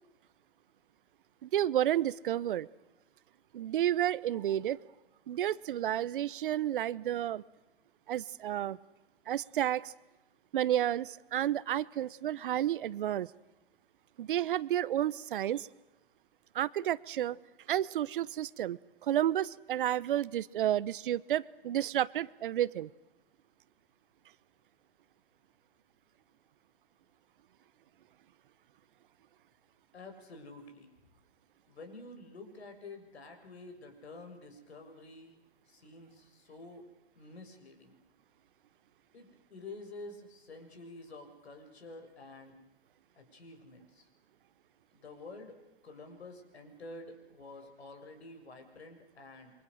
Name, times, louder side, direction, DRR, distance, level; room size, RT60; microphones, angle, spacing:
voice 1, 1.4-2.7 3.5-4.8 5.3-7.4 8.1-8.8 9.3-9.9 10.5-13.3 14.2-15.7 16.5-17.4 17.7-22.9, right 12 dB, 55° right, 19 dB, 0.9 m, -31 dB
voice 2, 29.9-30.9 31.7-36.9 37.2-38.0 39.1-42.6 43.1-44.1 44.9-45.6 45.8-49.5, left 2 dB, 80° left, 5 dB, 7.3 m, -49 dB
28.5 x 25.0 x 6.5 m, 1.0 s
hypercardioid pair, 140°, 32 cm